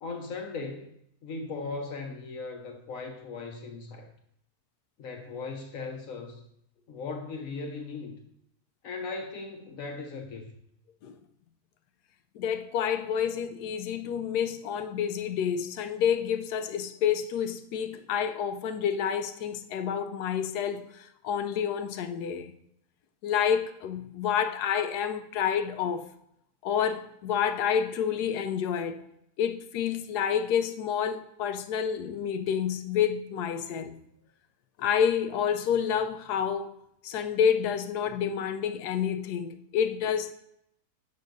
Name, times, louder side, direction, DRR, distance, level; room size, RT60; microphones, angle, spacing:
voice 1, 0.0-0.9 1.2-4.1 5.0-6.4 6.9-8.2 8.8-10.5, left 4 dB, 65° left, 1.0 m, -38 dB
voice 2, 12.3-22.5 23.2-26.1 26.6-29.0 29.4-34.0 34.8-36.7 37.0-40.3, left 8 dB, 90° left, 1.1 m, -29 dB
8.2 x 5.3 x 2.6 m
omnidirectional pair, 1.7 m